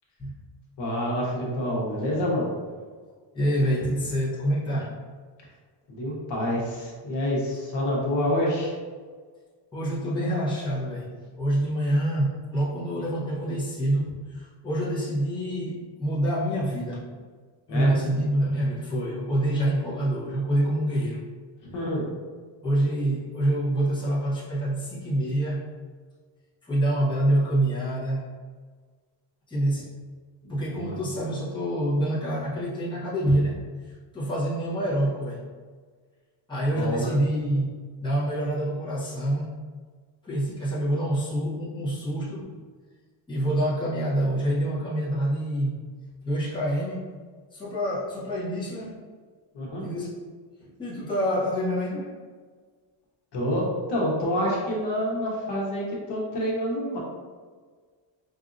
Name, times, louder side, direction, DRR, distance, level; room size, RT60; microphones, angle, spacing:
voice 1, 0.8-2.5 5.9-8.7 17.7-17.9 21.6-22.0 30.5-31.0 36.7-37.1 49.5-49.8 53.3-57.0, equal, 65° left, -4 dB, 1.1 m, -27 dB
voice 2, 3.3-5.0 9.7-11.1 11.4-17.1 17.7-21.2 22.6-25.7 26.6-28.3 29.5-29.9 30.5-33.6 34.1-35.4 36.5-37.7 38.0-39.6 40.2-42.5 43.3-45.8 46.2-47.1 47.5-49.0 49.8-50.2 50.8-52.1, right 1 dB, 10° left, -9 dB, 0.9 m, -26 dB
4.8 x 2.6 x 2.5 m, 1.5 s
cardioid pair, 175°, 46 cm